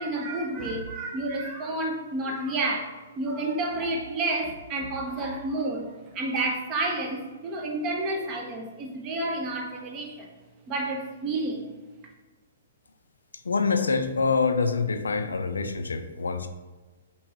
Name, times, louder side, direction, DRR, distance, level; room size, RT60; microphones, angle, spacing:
voice 1, 0.0-10.3 10.7-11.7, right 2 dB, 30° right, 1 dB, 0.8 m, -30 dB
voice 2, 13.4-16.5, left 4 dB, 80° left, 8 dB, 0.4 m, -25 dB
4.4 x 3.1 x 2.8 m, 1.2 s
figure-of-eight pair, 120°, 0 cm